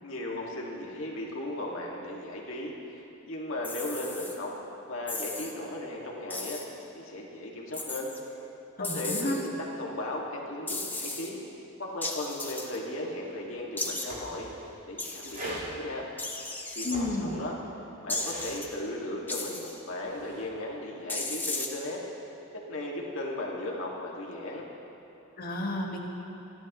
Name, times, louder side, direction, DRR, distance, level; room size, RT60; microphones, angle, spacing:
voice 1, 0.0-4.5 4.9-6.6 6.9-8.1 8.8-9.5 9.8-11.4 11.8-14.5 14.9-16.1 16.8-17.5 18.0-22.0 22.5-24.7, left 1 dB, 65° left, -2 dB, 2.1 m, -36 dB
sound 1, 3.6-4.4 5.1-5.5 6.3-6.7 7.7-8.2 8.8-9.5 10.7-11.3 12.0-12.8 13.8-14.1 15.0-15.5 16.2-17.0 18.1-18.7 19.3-19.8 21.1-21.7, left 2 dB, 10° left, 0.9 m, -35 dB
voice 2, 8.8-9.4 16.8-17.3 25.4-26.0, left 2 dB, 45° left, -1 dB, 1.6 m, -31 dB
sound 2, 13.5-13.6 13.8-14.7 15.3-15.7 16.7-17.7 18.0-18.6 19.8-20.5, right 1 dB, 45° right, 4.0 m, -41 dB
29.5 x 11.0 x 3.1 m, 2.9 s
head